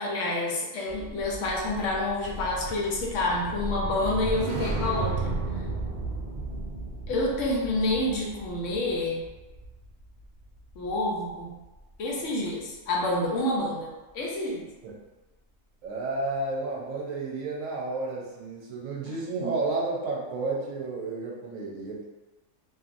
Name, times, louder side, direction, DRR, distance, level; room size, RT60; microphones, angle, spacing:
voice 1, 0.0-5.3 7.1-9.2 10.8-11.6 12.0-14.6 19.1-19.2, left 1 dB, 70° left, -2 dB, 0.9 m, -28 dB
sound 1, 0.9-11.3 11.6-11.9, right 2 dB, 60° right, 0.6 m, -34 dB
voice 2, 15.8-22.1, right 3 dB, 80° right, -2 dB, 1.0 m, -31 dB
2.7 x 2.5 x 2.4 m, 1.1 s
omnidirectional pair, 1.4 m